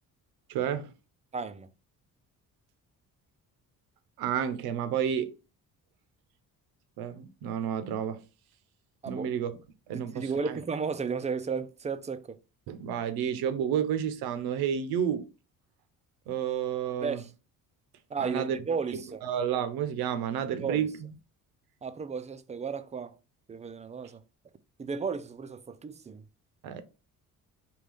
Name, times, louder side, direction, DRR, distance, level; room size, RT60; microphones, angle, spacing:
voice 1, 0.5-0.9 4.2-5.4 7.0-8.2 9.0-9.6 9.9-10.6 12.7-15.3 16.3-17.2 18.2-18.6 18.9-21.2 26.6-26.8, right 8 dB, 80° right, 0.6 m, -31 dB
voice 2, 1.3-1.7 9.0-9.3 9.9-12.4 17.0-17.2 18.1-19.2 20.6-20.9 21.8-23.2 23.5-24.2 24.8-26.2, right 5 dB, 20° right, 0.3 m, -34 dB
3.7 x 2.3 x 3.3 m
cardioid pair, 80°, 36 cm